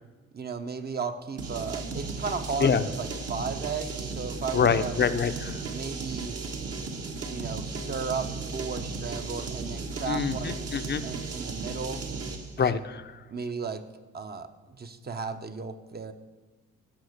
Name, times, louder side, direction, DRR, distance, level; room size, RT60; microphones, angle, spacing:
voice 1, 0.3-5.0 5.7-6.4 7.3-10.6 11.0-12.0 12.6-12.8 13.3-13.8 14.1-16.1, right 5 dB, 30° right, 8 dB, 1.0 m, -35 dB
sound 1, 1.4-12.5, right 4 dB, 50° right, 1.6 m, -35 dB
voice 2, 4.5-5.6 10.1-11.0 12.6-13.0, left 7 dB, 35° left, 11 dB, 0.7 m, -25 dB
16.5 x 5.7 x 6.6 m, 1.3 s
cardioid pair, 90°, 30 cm